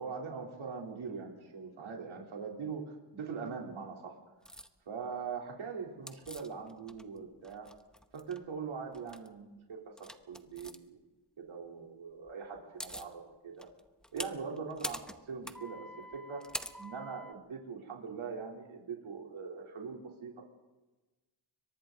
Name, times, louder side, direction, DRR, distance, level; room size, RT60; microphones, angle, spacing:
voice 1, 0.0-4.2 4.9-7.7 8.1-9.8 10.3-11.0 11.4-13.7 14.1-15.0 15.3-16.4 16.7-20.4, right 5 dB, 85° right, -1 dB, 3.6 m, -42 dB
sound 1, 4.4-4.7 6.1-7.2 7.4-8.4 8.9-9.3 10.0-10.8 12.3-12.4 12.6-13.1 13.6-17.3, equal, ahead, 0.8 m, -44 dB
30.0 x 23.0 x 3.9 m, 1.1 s
wide cardioid pair, 140°, 47 cm